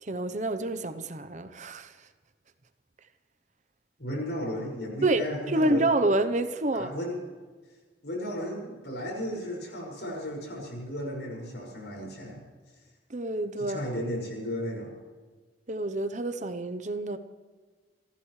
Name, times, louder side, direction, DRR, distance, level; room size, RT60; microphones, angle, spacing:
voice 1, 0.0-1.9 5.0-6.9 13.1-13.8 15.7-17.2, right 2 dB, 40° right, 0.9 m, -28 dB
voice 2, 4.0-5.9 6.7-7.2 8.0-12.4 13.6-14.9, equal, 70° left, 6.0 m, -34 dB
28.5 x 14.5 x 3.3 m
head